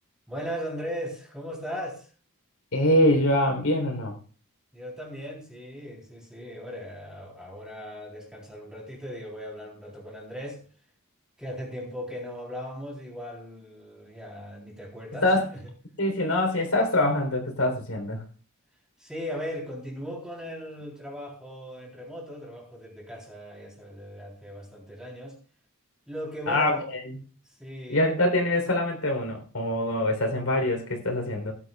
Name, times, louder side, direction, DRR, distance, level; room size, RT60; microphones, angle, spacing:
voice 1, 0.3-2.1 4.7-10.6 11.4-15.6 19.0-25.4 26.1-26.9 27.6-28.1, equal, 5° right, 3.7 m, -38 dB
voice 2, 2.7-4.2 15.2-15.5 16.0-18.2 26.5-26.7 27.0-27.2 27.9-31.5, left 1 dB, 75° left, 3.7 m, -24 dB
17.0 x 11.5 x 2.4 m
head